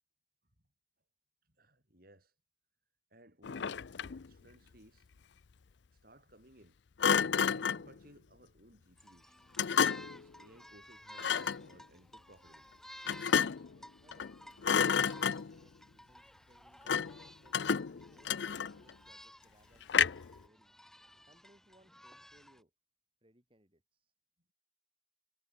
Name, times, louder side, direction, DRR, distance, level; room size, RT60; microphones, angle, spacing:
voice 1, 1.4-2.3 3.1-5.3 5.9-6.8 7.5-9.4 10.1-12.8, right 1 dB, 50° right, 7.5 m, -61 dB
Thump thud, 3.4-4.3 7.0-7.9 9.6-10.2 11.2-11.7 13.1-13.7 14.1-14.3 14.6-15.6 16.9-17.2 17.5-18.9 19.9-20.4, left 7 dB, 65° left, 0.5 m, -30 dB
sound 1, 9.0-22.6, left 1 dB, ahead, 3.5 m, -55 dB
voice 2, 13.7-17.0 17.4-20.7 21.2-22.7 23.2-24.1, right 1 dB, 30° right, 4.3 m, -67 dB
head